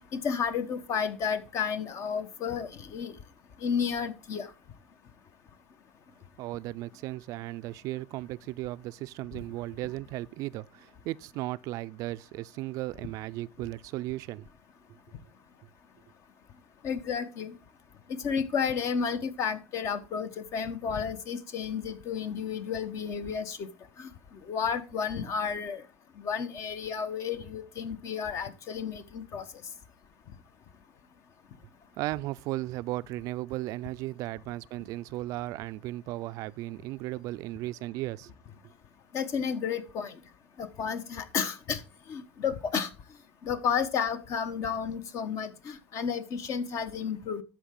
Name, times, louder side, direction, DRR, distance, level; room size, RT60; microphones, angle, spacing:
voice 1, 0.1-3.1 3.6-4.5 16.8-17.5 18.1-23.7 24.0-24.1 24.5-25.8 26.2-29.4 39.1-40.1 40.6-41.8 42.1-42.9 43.4-47.4, left 6 dB, 50° left, 1.1 m, -32 dB
voice 2, 6.4-14.5 32.0-38.3, right 17 dB, 60° right, 0.4 m, -36 dB
13.0 x 4.7 x 3.7 m
supercardioid pair, 95°, 7 cm